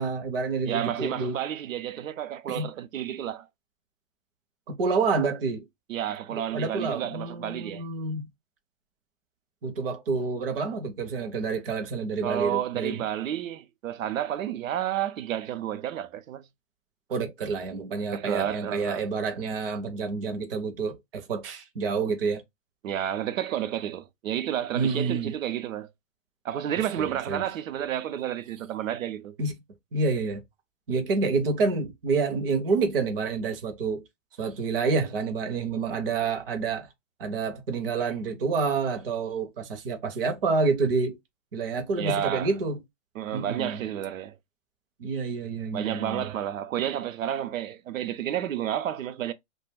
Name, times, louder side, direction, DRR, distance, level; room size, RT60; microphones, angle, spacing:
voice 1, 0.0-1.4 2.5-2.7 4.8-5.6 6.5-8.3 9.6-12.9 17.1-22.4 24.7-25.3 27.0-27.4 29.4-29.5 29.9-30.4 30.9-34.0 34.4-36.9 37.2-41.2 41.5-42.8 43.3-43.8 45.0-46.3, right 4 dB, 45° right, 0.6 m, -28 dB
voice 2, 0.6-3.5 5.9-7.8 12.2-16.5 18.1-19.1 22.8-25.9 26.4-29.4 42.0-42.5 43.2-44.3 45.7-49.3, right 11 dB, 90° right, 0.6 m, -31 dB
2.5 x 2.1 x 3.2 m
hypercardioid pair, 180°, 39 cm